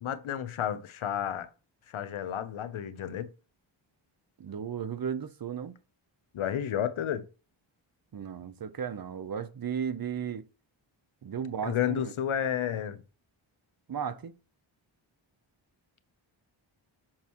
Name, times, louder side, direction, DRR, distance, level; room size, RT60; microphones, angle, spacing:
voice 1, 0.0-1.5 1.9-3.3 6.3-7.3 11.6-13.0, left 10 dB, 80° left, 0.9 m, -31 dB
voice 2, 4.4-5.7 8.1-10.5 11.2-12.1 13.9-14.3, right 7 dB, 45° right, 0.8 m, -35 dB
8.6 x 6.4 x 3.0 m
wide cardioid pair, 130°, 48 cm